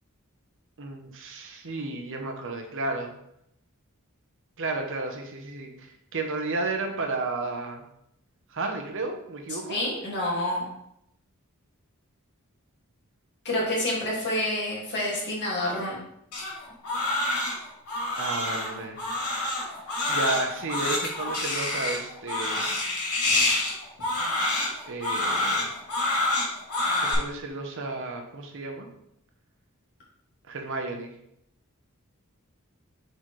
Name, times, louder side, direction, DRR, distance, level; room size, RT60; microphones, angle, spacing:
voice 1, 0.8-3.1 4.6-7.8 8.5-9.8 18.2-19.1 20.1-22.7 24.8-25.7 26.9-28.9 30.5-31.1, right 3 dB, 60° right, 3 dB, 0.9 m, -32 dB
voice 2, 9.7-10.7 13.4-16.0, left 1 dB, 50° left, -5 dB, 2.2 m, -28 dB
Crying sobbing, 16.3-27.1, left 2 dB, 85° left, 2.5 m, -27 dB
7.5 x 4.0 x 3.2 m, 0.76 s
head